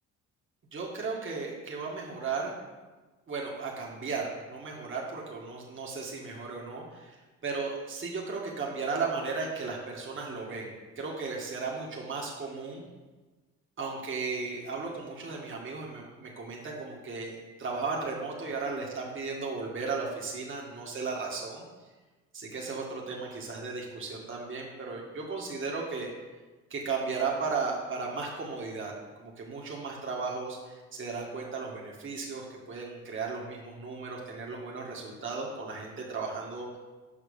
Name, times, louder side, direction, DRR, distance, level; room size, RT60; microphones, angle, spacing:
voice 1, 0.7-2.5 3.3-12.8 13.8-21.6 22.3-26.1 26.7-28.9 29.2-36.7, right 4 dB, 40° right, -2 dB, 1.8 m, -35 dB
7.3 x 5.8 x 5.4 m, 1.3 s
cardioid pair, 90°, 30 cm